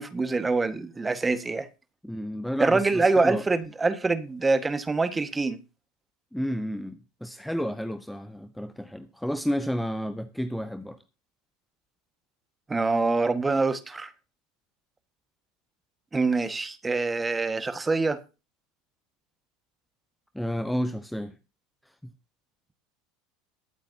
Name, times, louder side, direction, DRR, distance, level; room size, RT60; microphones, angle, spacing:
voice 1, 0.0-1.7 2.6-5.6 12.7-14.1 16.1-18.2, right 3 dB, 15° right, 1.5 m, -25 dB
voice 2, 2.0-3.4 6.3-11.0 20.3-21.3, equal, 5° left, 0.9 m, -31 dB
22.0 x 8.2 x 2.8 m
hypercardioid pair, 75°, 0 cm